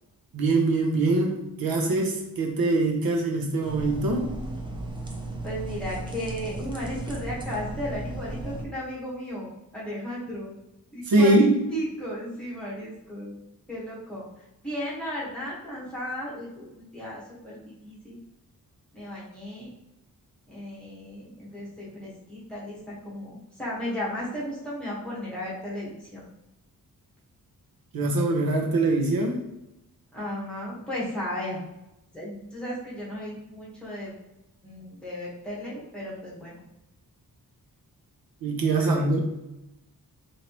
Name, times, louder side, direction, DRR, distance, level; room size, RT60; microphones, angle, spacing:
voice 1, 0.3-1.3 1.6-4.3 11.1-11.6 27.9-29.4 38.4-39.2, right 2 dB, 70° right, 1 dB, 0.8 m, -23 dB
sound 1, 3.6-8.6, right 2 dB, 15° right, 0.5 m, -35 dB
voice 2, 5.4-10.5 10.9-13.3 13.7-18.2 18.9-19.7 20.5-26.2 30.1-31.6 32.1-34.1 34.6-36.6 38.8-39.1, equal, 5° left, -7 dB, 1.3 m, -35 dB
4.4 x 2.8 x 3.0 m, 0.90 s
wide cardioid pair, 175°, 36 cm